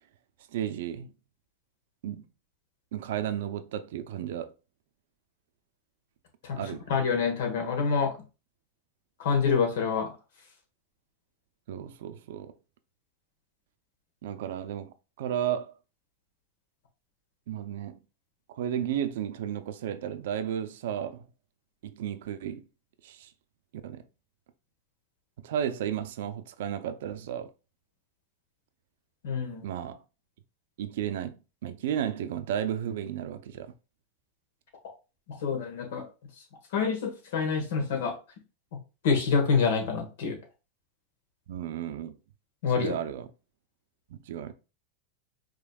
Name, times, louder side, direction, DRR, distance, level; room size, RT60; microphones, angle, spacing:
voice 1, 0.5-1.1 2.0-2.3 2.9-4.5 6.6-6.9 11.7-12.5 14.2-15.7 17.5-18.0 18.5-21.3 21.8-22.6 23.0-23.3 23.8-24.0 25.4-27.5 29.6-30.0 30.8-33.7 41.5-42.2 42.7-43.3 44.1-44.5, right 10 dB, 70° right, 0.5 m, -33 dB
voice 2, 6.9-8.1 9.2-10.1 29.2-29.6 35.4-36.1 36.7-38.1 39.0-40.4 42.6-43.0, left 5 dB, 70° left, 1.4 m, -26 dB
5.1 x 3.0 x 2.3 m
supercardioid pair, 145°, 0 cm